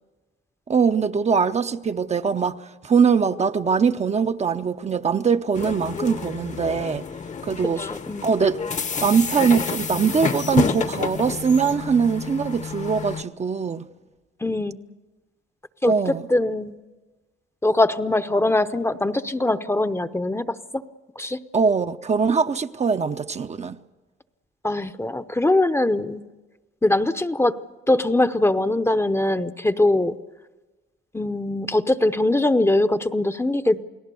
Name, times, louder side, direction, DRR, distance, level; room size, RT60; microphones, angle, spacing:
voice 1, 0.7-2.6 2.8-7.0 7.4-7.8 8.2-8.6 9.0-13.9 15.9-16.2 21.5-23.8, right 6 dB, 35° right, 0.7 m, -22 dB
sound 1, 5.5-13.2, left 5 dB, 40° left, 1.0 m, -29 dB
voice 2, 7.8-8.3 14.4-14.8 15.8-16.7 17.6-20.6 21.2-21.4 24.6-26.2 26.8-27.6 27.9-30.2 31.1-33.8, left 2 dB, 10° left, 0.8 m, -22 dB
29.0 x 19.0 x 6.9 m
cardioid pair, 90°, 20 cm